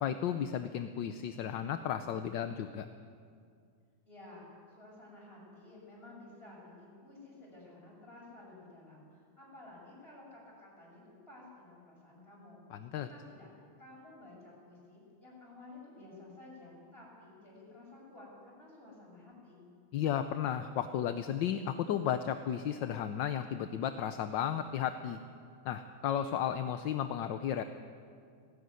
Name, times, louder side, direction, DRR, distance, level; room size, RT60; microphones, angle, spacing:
voice 1, 0.0-2.9 12.7-13.1 19.9-25.2 25.6-27.6, left 9 dB, 65° left, 9 dB, 1.3 m, -34 dB
voice 2, 4.1-4.5 4.7-11.0 11.3-12.6 13.0-13.5 13.8-19.7, left 2 dB, 25° left, -4 dB, 8.3 m, -53 dB
19.0 x 17.0 x 9.6 m, 2.2 s
omnidirectional pair, 2.4 m